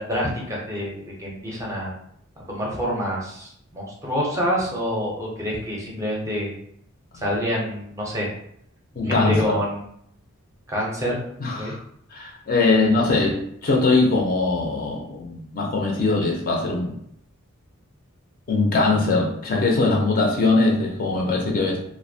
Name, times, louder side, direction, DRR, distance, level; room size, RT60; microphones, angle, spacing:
voice 1, 0.0-1.9 2.5-6.5 7.1-8.3 9.0-9.8 10.7-11.2 11.5-11.7 13.1-13.3, equal, 15° right, -3 dB, 0.5 m, -27 dB
voice 2, 9.0-9.6 11.4-11.8 12.1-16.9 18.5-21.8, left 3 dB, 40° left, -1 dB, 0.5 m, -21 dB
2.5 x 2.1 x 2.6 m, 0.70 s
head